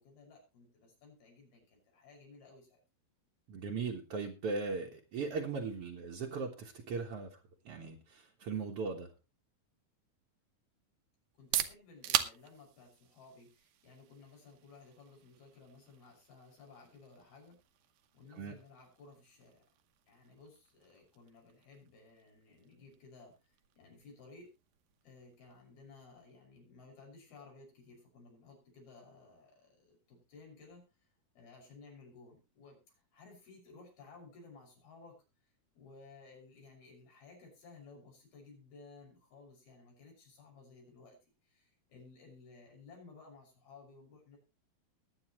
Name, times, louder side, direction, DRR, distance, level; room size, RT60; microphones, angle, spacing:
voice 1, 0.0-2.8 11.4-17.6 18.1-19.6 20.1-24.5 25.0-30.9 31.4-32.8 33.1-35.2 35.8-41.2 41.4-44.4, left 4 dB, 85° left, 0 dB, 8.1 m, -57 dB
voice 2, 3.5-7.4 7.7-9.1 18.3-18.5, right 4 dB, 55° right, 0 dB, 1.8 m, -38 dB
sound 1, 11.2-26.9, right 12 dB, 75° right, 2.7 m, -43 dB
21.5 x 8.8 x 3.1 m, 0.28 s
omnidirectional pair, 4.3 m